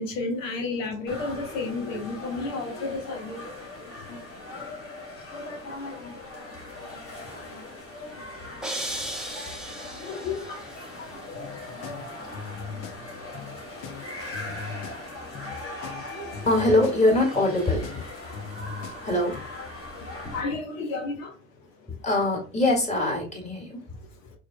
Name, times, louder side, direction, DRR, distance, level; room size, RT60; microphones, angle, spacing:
voice 1, 0.0-3.5 4.1-4.2 5.3-6.5 7.0-7.6 8.8-8.9 10.0-11.2 11.9-12.0 12.7-12.8 19.3-19.7 20.3-21.3, left 3 dB, 85° left, 1.0 m, -33 dB
sound 1, 1.1-20.4, left 2 dB, 35° left, 2.1 m, -40 dB
sound 2, 8.6-10.7, right 1 dB, ahead, 0.8 m, -35 dB
sound 3, 11.4-19.4, left 6 dB, 55° left, 0.8 m, -39 dB
voice 2, 16.5-18.0 19.0-19.4 22.0-23.8, left 2 dB, 20° left, 2.0 m, -23 dB
4.6 x 3.6 x 2.2 m
hypercardioid pair, 70°, 38 cm